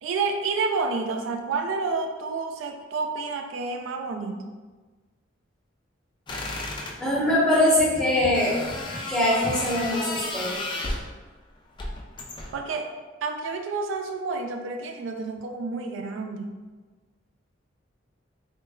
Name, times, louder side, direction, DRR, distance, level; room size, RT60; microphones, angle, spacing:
voice 1, 0.0-4.4 12.5-12.9 13.2-16.5, right 4 dB, 80° right, 5 dB, 0.3 m, -29 dB
sound 1, 6.3-7.0 8.3-11.1 11.8-12.6, left 2 dB, 25° left, 0.3 m, -33 dB
voice 2, 7.0-8.6 9.1-10.6, left 1 dB, 5° left, -7 dB, 0.8 m, -22 dB
3.1 x 2.1 x 3.5 m, 1.3 s
head